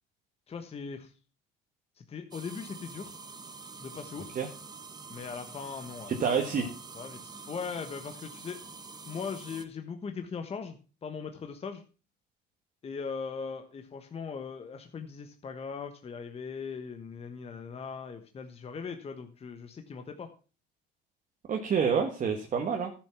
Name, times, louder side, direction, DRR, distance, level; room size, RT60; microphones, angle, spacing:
voice 1, 0.5-1.1 2.0-3.2 3.8-4.4 5.1-6.2 6.4-8.6 9.0-11.8 12.8-20.3, left 5 dB, 30° left, 6 dB, 1.2 m, -40 dB
sound 1, 2.3-9.6, right 4 dB, 20° right, 1.2 m, -46 dB
voice 2, 6.1-6.6 21.5-22.9, right 6 dB, 40° right, 3 dB, 1.5 m, -28 dB
11.5 x 6.8 x 5.9 m, 0.36 s
supercardioid pair, 105°, 20 cm